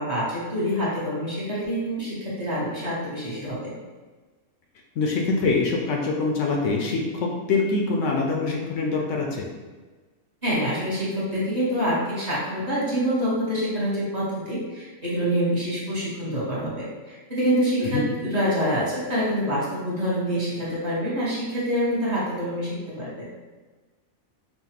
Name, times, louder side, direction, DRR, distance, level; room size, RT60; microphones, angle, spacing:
voice 1, 0.0-3.7 10.4-23.3, equal, 35° right, -8 dB, 0.9 m, -26 dB
voice 2, 5.0-9.4 17.8-18.0, left 3 dB, 70° left, 1 dB, 0.9 m, -24 dB
5.6 x 2.2 x 2.9 m, 1.3 s
omnidirectional pair, 1.4 m